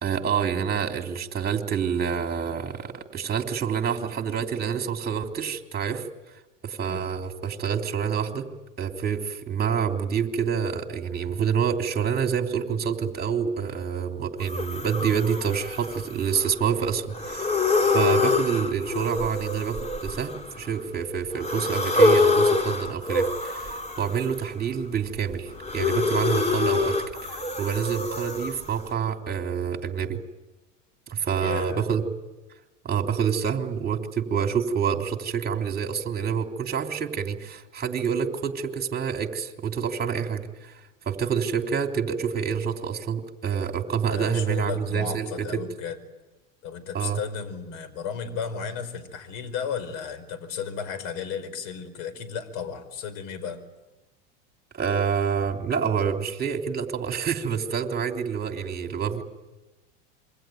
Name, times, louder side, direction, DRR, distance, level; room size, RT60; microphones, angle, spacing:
voice 1, 0.0-6.1 6.6-8.5 8.8-17.5 17.8-30.2 31.1-32.0 32.8-45.6 46.9-47.2 54.7-59.2, right 7 dB, 25° right, 4 dB, 3.2 m, -27 dB
sound 1, 14.4-16.6 17.1-20.8 21.4-24.5 25.0-28.8, left 3 dB, 20° left, 3.3 m, -25 dB
voice 2, 31.4-31.8 44.1-46.0 46.6-53.6, left 6 dB, 65° left, 11 dB, 4.8 m, -34 dB
27.0 x 23.0 x 9.3 m, 1.1 s
hypercardioid pair, 95°, 35 cm